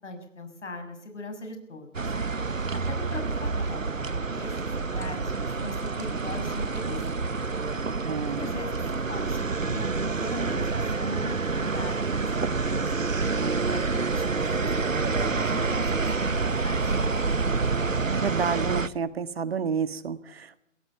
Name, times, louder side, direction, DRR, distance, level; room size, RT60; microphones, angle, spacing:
voice 1, 0.0-2.1 2.7-7.4 8.3-8.7 9.1-12.9 13.6-17.4, left 2 dB, 65° left, 5 dB, 7.3 m, -41 dB
sound 1, 1.9-18.9, right 4 dB, 85° right, 1.2 m, -28 dB
voice 2, 8.0-8.5 18.1-20.6, right 6 dB, 50° right, 14 dB, 1.7 m, -30 dB
24.0 x 16.5 x 7.0 m, 0.80 s
figure-of-eight pair, 140°, 38 cm